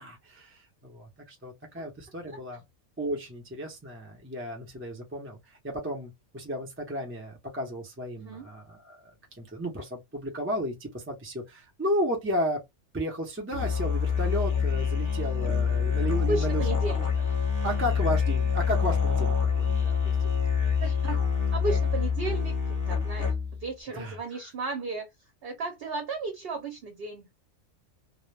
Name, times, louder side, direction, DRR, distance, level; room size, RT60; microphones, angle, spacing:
voice 1, 0.0-2.6 3.0-12.6 12.9-16.6 16.9-17.0 17.6-20.0 23.9-24.2, equal, 20° right, 0.3 m, -33 dB
voice 2, 8.2-8.5 16.2-17.1 20.8-21.2 21.5-23.3 23.6-25.1 25.4-27.3, right 3 dB, 55° right, 0.8 m, -34 dB
Musical instrument, 13.5-23.7, left 6 dB, 15° left, 0.9 m, -26 dB
2.1 x 2.0 x 3.1 m
omnidirectional pair, 1.3 m